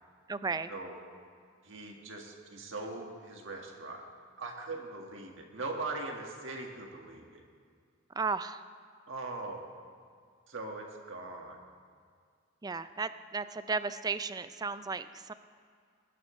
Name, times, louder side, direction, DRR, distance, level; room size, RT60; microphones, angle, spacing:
voice 1, 0.3-0.7 8.1-8.6 12.6-15.3, right 4 dB, 20° right, 13 dB, 0.4 m, -34 dB
voice 2, 1.6-4.0 4.4-7.4 9.1-9.7 10.5-11.6, right 3 dB, 65° right, 1 dB, 1.7 m, -41 dB
21.5 x 11.0 x 3.2 m, 2.1 s
head